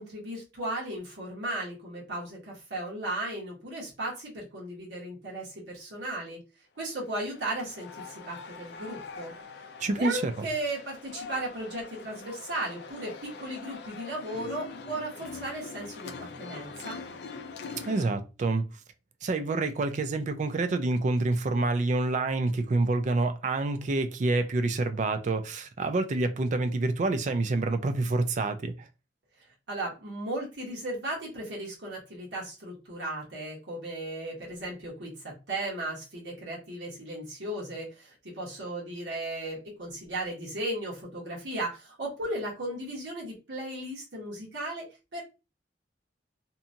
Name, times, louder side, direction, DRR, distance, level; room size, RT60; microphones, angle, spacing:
voice 1, 0.0-6.4 6.8-9.3 10.0-17.0 29.7-45.2, right 1 dB, 85° right, 1.1 m, -36 dB
sound 1, 7.0-18.1, left 4 dB, 65° left, 0.4 m, -43 dB
voice 2, 9.8-10.5 17.9-18.7 19.2-28.9, right 2 dB, 45° right, 0.4 m, -27 dB
2.8 x 2.3 x 2.6 m
head